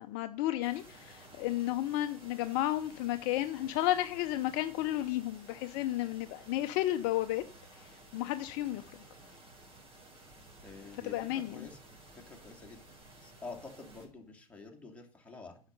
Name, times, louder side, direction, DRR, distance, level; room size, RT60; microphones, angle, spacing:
voice 1, 0.0-7.4 7.7-8.8 11.0-11.7, left 14 dB, 45° left, 0.7 m, -32 dB
sound 1, 0.6-14.1, right 2 dB, 30° right, 4.7 m, -55 dB
voice 2, 10.6-11.8 12.1-12.8 13.2-15.6, left 3 dB, 5° left, 2.6 m, -48 dB
10.0 x 6.6 x 5.4 m
hypercardioid pair, 90°, 19 cm